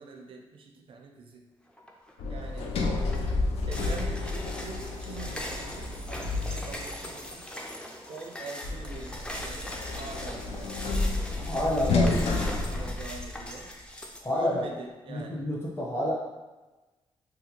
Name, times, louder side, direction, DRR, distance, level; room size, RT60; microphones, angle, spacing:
voice 1, 0.0-1.4 2.2-2.7 3.7-7.5 8.1-10.8 11.4-13.7 14.3-15.5, right 4 dB, 60° right, 1 dB, 0.4 m, -44 dB
sound 1, 1.8-2.1 2.5-14.2, left 1 dB, 10° left, 0.4 m, -41 dB
Sliding door, 2.2-7.0 8.6-13.6, left 3 dB, 85° left, 0.4 m, -30 dB
voice 2, 11.3-12.9 14.2-14.7 15.1-16.1, left 1 dB, 25° left, -5 dB, 0.9 m, -30 dB
2.9 x 2.3 x 2.8 m, 1.2 s
cardioid pair, 85°, 10 cm